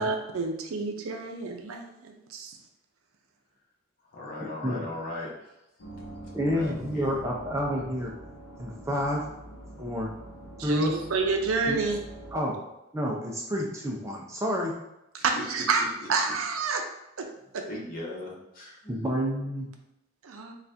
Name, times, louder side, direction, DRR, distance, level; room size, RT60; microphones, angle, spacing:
voice 1, 0.0-2.6 10.6-12.0 15.2-15.8 16.1-16.8 17.2-17.3 17.5-17.6 20.2-20.5, right 4 dB, 70° right, 4 dB, 0.5 m, -28 dB
voice 2, 4.0-5.5 6.0-6.1 6.4-7.1 15.3-16.1 17.7-18.9, left 1 dB, 40° left, -4 dB, 1.0 m, -38 dB
sound 1, 5.8-12.4, right 1 dB, 65° left, 0.8 m, -45 dB
voice 3, 6.3-8.1 8.6-9.2 9.8-10.1 10.6-10.9 11.7-11.8 12.3-12.6 12.9-14.7 18.9-19.7, equal, 15° right, -2 dB, 0.5 m, -29 dB
4.0 x 2.4 x 3.3 m, 0.89 s
head